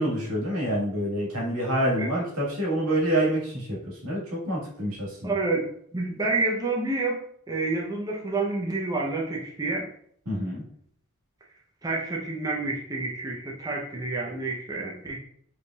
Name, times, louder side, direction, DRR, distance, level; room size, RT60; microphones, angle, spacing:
voice 1, 0.0-5.3 10.3-10.6, right 1 dB, 85° right, -5 dB, 1.6 m, -27 dB
voice 2, 5.2-5.7 5.9-7.2 7.5-9.9 11.8-15.2, right 3 dB, 15° right, -1 dB, 0.6 m, -28 dB
5.0 x 3.3 x 2.3 m, 0.65 s
head